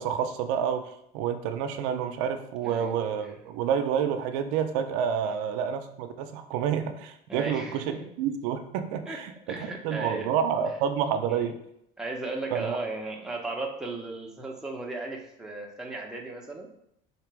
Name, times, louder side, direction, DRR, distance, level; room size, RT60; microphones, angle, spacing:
voice 1, 0.0-11.6 12.5-12.8, right 8 dB, 80° right, 7 dB, 0.5 m, -29 dB
voice 2, 7.3-8.1 9.0-9.2 9.5-10.3 11.3-11.5 12.0-16.7, right 2 dB, 5° right, -1 dB, 0.6 m, -35 dB
3.8 x 2.9 x 4.6 m, 0.74 s
cardioid pair, 135°, 17 cm